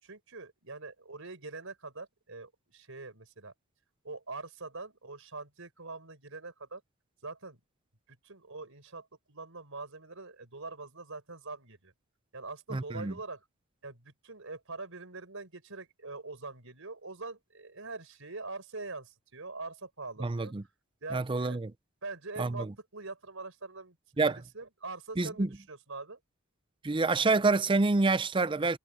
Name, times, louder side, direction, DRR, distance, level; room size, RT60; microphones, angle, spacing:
voice 1, 0.0-3.5 4.0-6.8 7.2-7.6 8.1-11.9 12.3-13.4 13.8-20.5 21.0-21.6 22.0-24.0 24.3-26.2, right 3 dB, 65° right, 5.9 m, -43 dB
voice 2, 12.7-13.1 20.2-20.6 21.1-21.7 22.4-22.7 24.2-24.4 25.2-25.5 26.8-28.8, right 3 dB, 25° right, 0.5 m, -27 dB
head